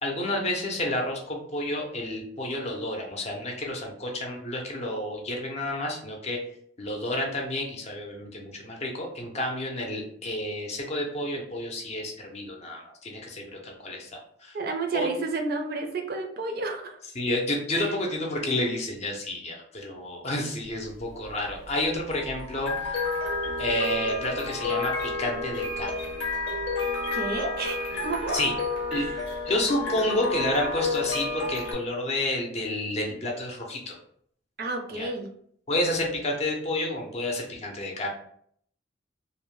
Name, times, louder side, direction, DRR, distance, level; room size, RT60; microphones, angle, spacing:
voice 1, 0.0-6.4 6.8-14.6 14.9-15.1 17.1-23.0 23.6-25.9 28.3-28.5 28.9-29.1 29.5-33.9 34.9-35.1 35.7-38.1, left 1 dB, 35° left, 0 dB, 0.5 m, -30 dB
voice 2, 14.5-17.0 17.7-17.9 27.1-28.4 28.9-29.1 34.6-35.2, right 3 dB, 50° right, 3 dB, 0.4 m, -31 dB
sound 1, 20.7-31.7, left 3 dB, 75° left, 0.7 m, -31 dB
2.6 x 2.1 x 3.0 m, 0.64 s
head